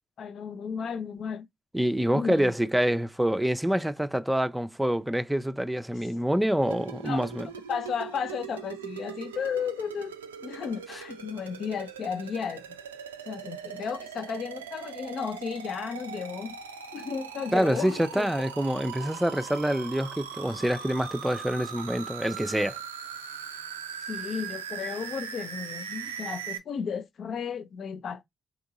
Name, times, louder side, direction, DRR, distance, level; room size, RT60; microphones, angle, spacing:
voice 1, 0.2-1.5 2.1-2.5 7.0-7.3 7.7-10.2 10.4-12.8 13.3-16.6 16.9-18.3 24.1-28.2, left 6 dB, 55° left, 0.5 m, -34 dB
voice 2, 1.7-7.5 17.5-22.8, equal, 10° right, 0.5 m, -26 dB
sound 1, 6.6-26.6, right 7 dB, 90° right, 0.3 m, -40 dB
3.6 x 3.0 x 3.8 m
hypercardioid pair, 45°, 0 cm